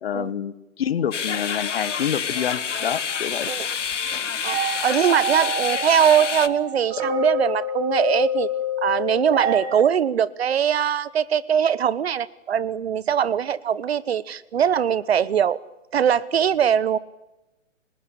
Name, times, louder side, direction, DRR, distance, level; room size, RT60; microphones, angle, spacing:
voice 1, 0.0-3.5 5.0-5.1, left 9 dB, 50° left, 16 dB, 1.6 m, -27 dB
sound 1, 1.1-6.5, left 7 dB, 65° left, 1.7 m, -28 dB
sound 2, 4.0-9.6, left 1 dB, 30° right, 6.8 m, -28 dB
voice 2, 4.4-8.5 8.8-15.6 15.9-17.0, right 8 dB, 50° right, 21 dB, 1.1 m, -21 dB
30.0 x 20.0 x 8.7 m, 1.0 s
figure-of-eight pair, 130°, 39 cm